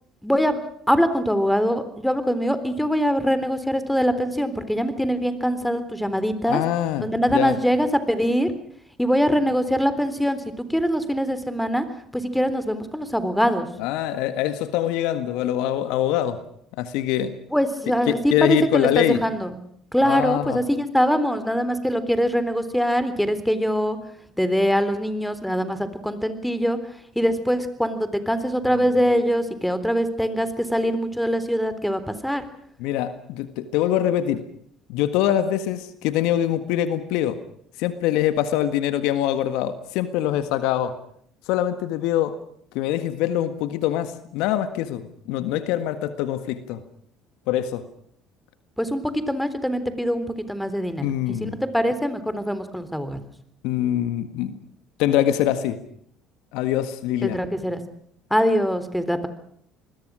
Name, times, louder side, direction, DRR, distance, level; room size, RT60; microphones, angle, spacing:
voice 1, 0.2-0.6 0.9-6.6 7.0-8.5 9.0-10.4 10.7-11.8 12.1-13.7 17.5-19.5 19.9-24.0 24.4-26.8 27.2-32.4 48.8-51.1 51.4-53.2 57.2-57.8 58.3-59.3, equal, ahead, 12 dB, 3.7 m, -23 dB
voice 2, 6.4-7.5 13.8-16.4 16.8-17.3 18.1-19.2 20.0-20.6 32.8-34.4 34.9-37.4 37.8-40.9 41.5-42.4 42.7-46.8 47.5-47.8 51.0-51.6 53.6-54.5 55.0-55.8 56.5-57.4, left 12 dB, 70° left, 11 dB, 1.7 m, -24 dB
27.0 x 21.0 x 6.3 m, 0.67 s
hypercardioid pair, 60°, 0 cm